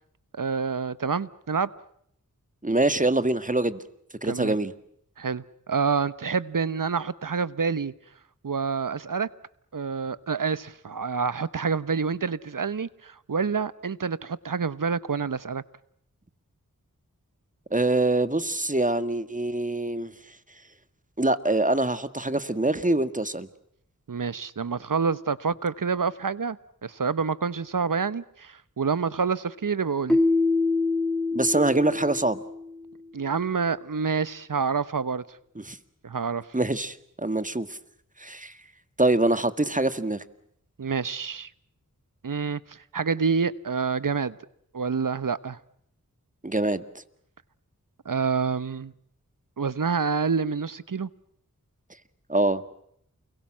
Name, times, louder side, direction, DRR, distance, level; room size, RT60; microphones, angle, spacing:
voice 1, 0.3-1.7 4.2-4.5 5.2-7.9 8.4-9.3 9.7-15.6 24.1-26.6 26.8-30.2 33.1-35.2 36.0-36.5 40.8-41.5 42.2-44.4 44.7-45.6 48.0-48.9 49.6-51.1, right 5 dB, 70° right, 1.1 m, -27 dB
voice 2, 2.6-3.8 4.2-4.7 17.7-20.1 21.2-23.5 31.3-32.4 35.6-35.8 36.5-37.8 38.2-38.6 39.0-40.2 46.4-46.8 52.3-52.6, right 2 dB, 25° right, 1.9 m, -24 dB
Keyboard (musical), 30.1-32.9, left 3 dB, ahead, 1.8 m, -25 dB
29.0 x 23.0 x 7.5 m
wide cardioid pair, 45°, 33 cm